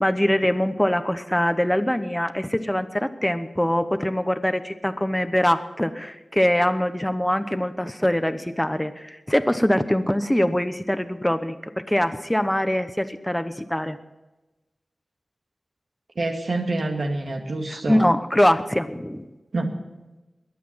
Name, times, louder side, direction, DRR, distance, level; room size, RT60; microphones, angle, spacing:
voice 1, 0.0-14.0 17.9-19.2, left 1 dB, 10° left, 9 dB, 0.9 m, -23 dB
voice 2, 16.2-18.1 19.5-19.8, right 2 dB, 75° right, 2 dB, 2.2 m, -27 dB
21.5 x 8.5 x 5.7 m, 1.1 s
wide cardioid pair, 70°, 0 cm